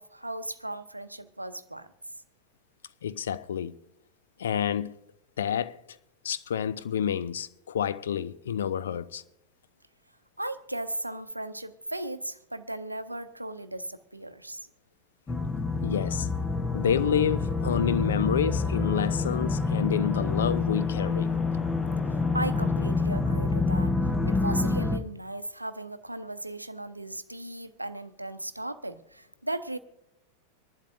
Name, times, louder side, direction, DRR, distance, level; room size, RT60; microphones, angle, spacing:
voice 1, 0.0-1.9 10.4-14.7 22.3-29.8, right 1 dB, 85° right, 0.6 m, -36 dB
voice 2, 3.0-3.8 4.4-5.0 5.4-6.0 6.2-9.2 15.8-16.3 16.7-21.4, left 8 dB, 65° left, 0.4 m, -29 dB
sound 1, 15.3-25.0, left 3 dB, 15° left, 0.9 m, -27 dB
25.5 x 11.5 x 2.6 m
figure-of-eight pair, 90°, 0 cm